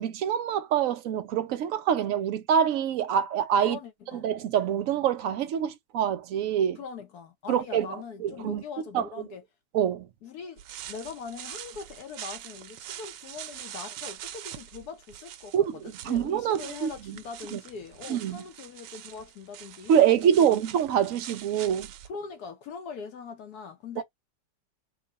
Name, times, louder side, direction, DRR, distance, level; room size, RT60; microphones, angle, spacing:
voice 1, 0.0-3.8 4.1-6.8 7.5-7.9 8.2-8.6 8.9-9.1 9.7-10.1 15.5-15.7 16.0-17.2 17.5-17.6 18.1-18.4 19.9-21.9 24.0-24.1, right 9 dB, 65° right, 0.9 m, -25 dB
voice 2, 3.6-4.3 6.8-9.4 10.2-20.6 22.0-24.0, left 5 dB, 70° left, 1.2 m, -42 dB
sound 1, 10.6-22.1, right 12 dB, 80° right, 1.2 m, -44 dB
3.7 x 2.2 x 3.9 m
omnidirectional pair, 1.9 m